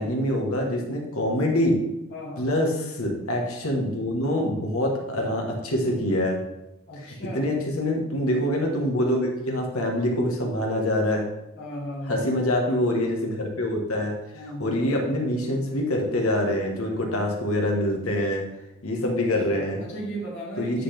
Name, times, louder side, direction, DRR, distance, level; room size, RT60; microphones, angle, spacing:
voice 1, 0.0-1.8 2.4-6.4 7.0-11.2 12.1-14.1 14.6-18.4 18.8-19.8 20.6-20.8, left 1 dB, 75° left, 1 dB, 1.4 m, -25 dB
voice 2, 2.1-2.5 6.9-7.6 11.6-12.4 14.3-14.8 19.1-19.2 19.5-20.8, equal, 60° left, -5 dB, 2.1 m, -36 dB
9.4 x 3.9 x 3.4 m, 0.92 s
head